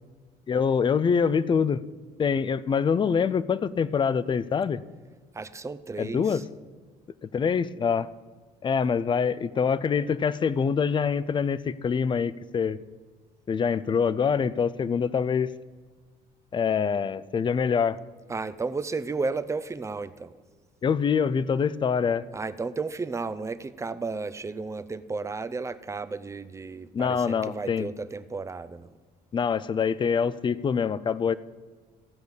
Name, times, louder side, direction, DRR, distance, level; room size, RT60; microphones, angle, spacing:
voice 1, 0.5-1.8 2.2-4.8 6.0-6.4 7.3-8.1 8.6-12.8 13.5-15.5 16.5-18.0 20.8-22.3 26.9-27.9 29.3-31.3, left 6 dB, 30° left, 18 dB, 0.5 m, -25 dB
voice 2, 5.3-6.4 18.3-20.4 22.3-29.0, right 4 dB, 15° right, 12 dB, 0.6 m, -33 dB
15.5 x 5.2 x 8.1 m, 1.5 s
cardioid pair, 110°, 17 cm